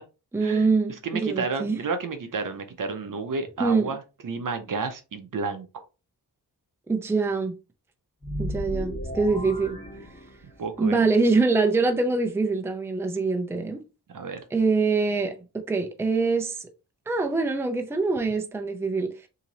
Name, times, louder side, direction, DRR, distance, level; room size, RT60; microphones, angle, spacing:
voice 1, 0.3-1.8 3.6-3.9 6.9-7.5 8.4-9.8 10.8-13.8 14.5-16.7 17.1-19.1, right 3 dB, 5° right, 0.5 m, -24 dB
voice 2, 1.0-5.8 10.6-11.0 14.1-14.4, right 4 dB, 55° right, 0.6 m, -31 dB
sound 1, 8.2-10.8, equal, 20° left, 1.6 m, -34 dB
2.9 x 2.8 x 3.9 m
wide cardioid pair, 115°, 40 cm